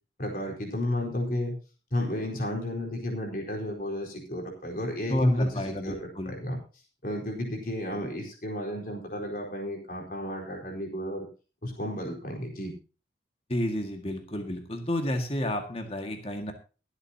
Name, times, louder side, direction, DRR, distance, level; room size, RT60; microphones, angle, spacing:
voice 1, 0.2-1.5 1.9-5.5 5.8-6.0 6.3-6.6 7.0-11.3 11.6-12.7, left 1 dB, 50° left, 0 dB, 4.2 m, -32 dB
voice 2, 5.1-6.4 13.5-16.5, left 1 dB, 30° left, 5 dB, 1.8 m, -31 dB
22.5 x 8.1 x 2.8 m, 0.34 s
head